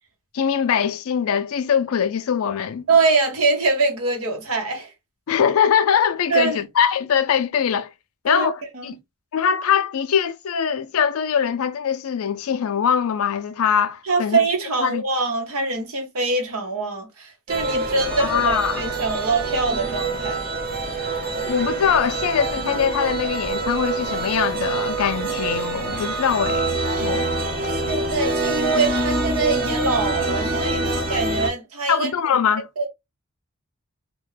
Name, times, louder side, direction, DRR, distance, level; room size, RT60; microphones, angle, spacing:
voice 1, 0.3-2.8 5.3-7.9 8.2-9.0 9.3-14.4 14.8-15.0 18.2-18.8 21.5-27.3 31.9-32.7, left 7 dB, 75° left, 0.4 m, -22 dB
voice 2, 2.9-4.9 6.3-6.6 8.3-8.5 8.7-8.9 14.1-20.5 27.7-32.1 32.8-32.9, right 3 dB, 75° right, 0.8 m, -23 dB
sound 1, 17.5-31.5, right 2 dB, 40° right, 0.6 m, -25 dB
2.4 x 2.1 x 3.1 m
head